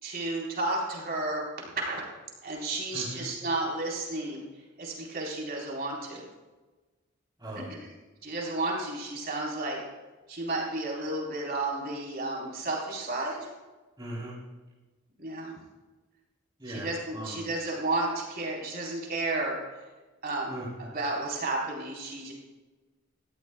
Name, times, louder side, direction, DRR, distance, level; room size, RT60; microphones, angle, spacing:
voice 1, 0.0-2.0 2.4-4.4 4.8-6.3 7.8-7.9 8.2-9.8 10.3-13.5 15.2-15.5 16.7-19.6 20.2-20.5 20.9-22.3, right 2 dB, 50° right, -2 dB, 4.2 m, -32 dB
voice 2, 2.9-3.2 7.4-7.7 14.0-14.4 16.6-17.4 20.5-20.9, right 1 dB, 20° right, -5 dB, 3.9 m, -39 dB
19.0 x 14.0 x 2.3 m, 1.2 s
head